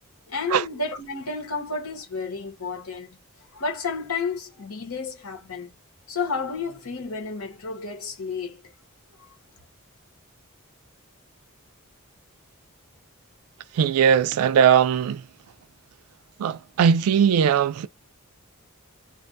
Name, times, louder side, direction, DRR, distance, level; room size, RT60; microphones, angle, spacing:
voice 1, 0.3-3.2 3.5-5.8 6.1-8.6, left 4 dB, 80° left, 1.1 m, -31 dB
voice 2, 13.7-15.2 16.4-17.9, right 7 dB, 85° right, 0.3 m, -19 dB
2.4 x 2.2 x 2.5 m
head